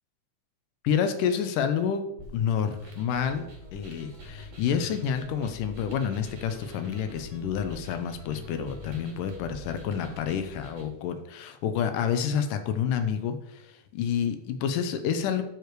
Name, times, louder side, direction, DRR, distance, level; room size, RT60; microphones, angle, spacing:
voice 1, 0.8-2.0 2.3-3.5 3.7-15.4, left 7 dB, 80° left, 8 dB, 2.3 m, -29 dB
sound 1, 2.2-10.2, left 3 dB, 25° right, 1.1 m, -47 dB
sound 2, 2.6-10.9, right 1 dB, 70° right, 4.2 m, -48 dB
11.5 x 4.9 x 4.7 m, 0.85 s
omnidirectional pair, 3.7 m